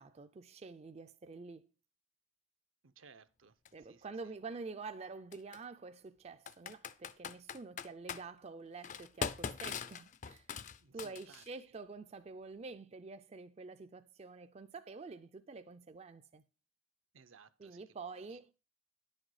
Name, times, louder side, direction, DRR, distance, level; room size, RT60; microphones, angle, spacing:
voice 1, 0.0-1.7 3.7-10.5 10.9-16.4 17.6-18.5, right 4 dB, 30° right, 0.4 m, -48 dB
voice 2, 2.8-3.5 3.9-4.0 10.8-11.4 17.1-17.8 18.1-18.4, right 5 dB, 75° right, 0.7 m, -60 dB
Computer keyboard, 3.6-3.7 5.3-5.6 6.5-8.2 8.8-11.5, left 6 dB, 35° left, 0.4 m, -41 dB
10.5 x 6.4 x 4.8 m
head